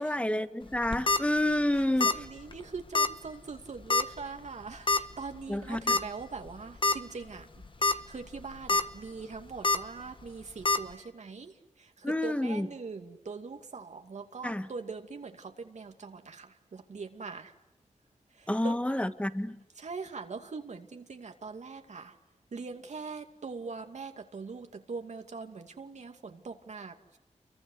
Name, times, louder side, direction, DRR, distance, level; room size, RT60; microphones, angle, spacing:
voice 1, 0.0-2.2 5.5-6.0 12.0-12.7 14.4-14.7 18.5-19.6, left 1 dB, 10° left, 1.7 m, -29 dB
sound 1, 0.7-1.2 2.0-2.3 2.5-2.6 2.9-3.1 3.9-4.2 4.9-5.0 5.9-6.0 6.5-6.6 6.8-6.9 7.6-7.9 8.4-8.8 9.6-9.8 10.6-10.8, left 3 dB, 40° left, 1.6 m, -25 dB
voice 2, 1.7-7.5 7.9-11.5 11.8-17.5 18.4-18.8 19.8-22.2 22.5-27.2, right 4 dB, 65° right, 2.6 m, -42 dB
29.5 x 24.0 x 8.1 m
wide cardioid pair, 75°, 13 cm